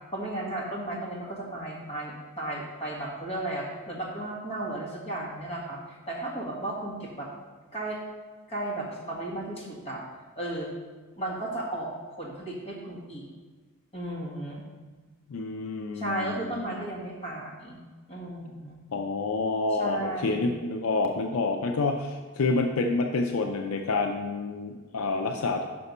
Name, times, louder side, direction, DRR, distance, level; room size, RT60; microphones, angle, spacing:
voice 1, 0.1-7.3 7.7-8.0 8.5-10.0 10.4-10.7 11.2-11.9 12.2-13.3 13.9-14.6 15.9-17.8 18.1-18.8 19.7-20.5, right 1 dB, 30° left, -4 dB, 1.6 m, -34 dB
voice 2, 15.3-16.7 18.9-25.6, left 3 dB, 75° left, 3 dB, 0.5 m, -28 dB
5.8 x 5.5 x 5.4 m, 1.3 s
head